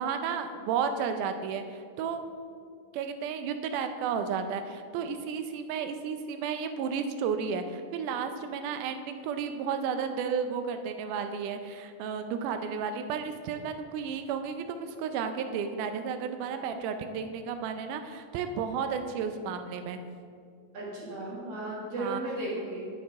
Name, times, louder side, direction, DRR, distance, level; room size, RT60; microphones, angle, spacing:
voice 1, 0.0-2.2 2.9-20.0 22.0-22.2, right 6 dB, 80° right, 8 dB, 2.1 m, -33 dB
voice 2, 20.7-22.9, right 1 dB, 50° right, -6 dB, 2.5 m, -35 dB
9.4 x 8.7 x 3.5 m, 2.2 s
omnidirectional pair, 3.7 m